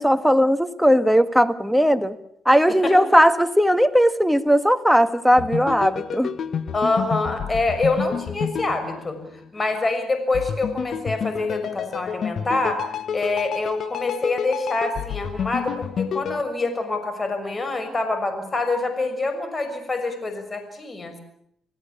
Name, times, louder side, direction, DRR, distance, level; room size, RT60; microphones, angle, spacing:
voice 1, 0.0-2.2 2.4-6.3, equal, ahead, 10 dB, 1.6 m, -18 dB
sound 1, 5.3-9.6 10.3-16.4, left 7 dB, 60° left, 1.5 m, -29 dB
voice 2, 6.7-12.8 13.1-21.2, left 2 dB, 30° left, 8 dB, 6.4 m, -26 dB
27.5 x 16.5 x 8.6 m, 0.71 s
cardioid pair, 90°, 0 cm